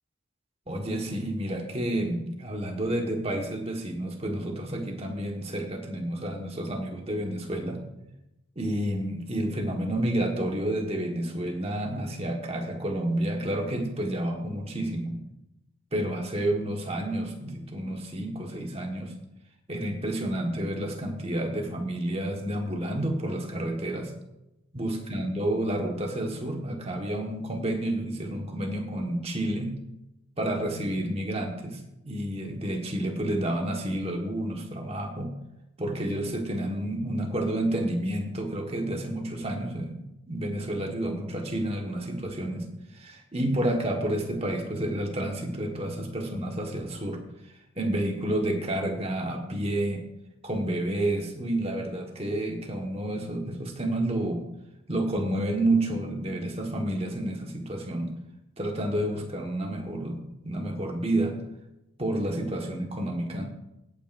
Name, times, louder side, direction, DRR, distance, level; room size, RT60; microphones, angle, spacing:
voice 1, 0.7-7.8 8.5-15.2 15.9-19.1 19.7-24.1 24.7-29.8 30.4-35.3 35.8-40.0 40.3-50.0 50.4-54.4 54.9-58.1 58.6-60.2 60.4-61.4 62.0-63.5, right 1 dB, 25° right, 2 dB, 1.4 m, -30 dB
16.5 x 8.9 x 2.6 m, 0.89 s
head